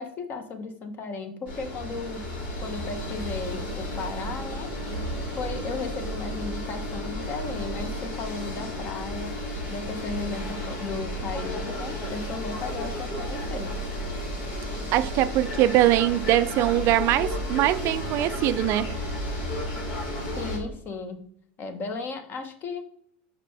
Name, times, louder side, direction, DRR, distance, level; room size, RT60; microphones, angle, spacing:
voice 1, 0.0-2.3 2.6-4.7 5.4-9.4 9.7-13.8 20.4-21.2 21.6-22.9, left 4 dB, 40° left, 1.1 m, -35 dB
sound 1, 1.5-20.6, left 1 dB, 70° left, 2.6 m, -32 dB
voice 2, 14.9-19.0, right 14 dB, 50° right, 0.4 m, -22 dB
5.6 x 5.0 x 3.4 m
supercardioid pair, 105°, 5 cm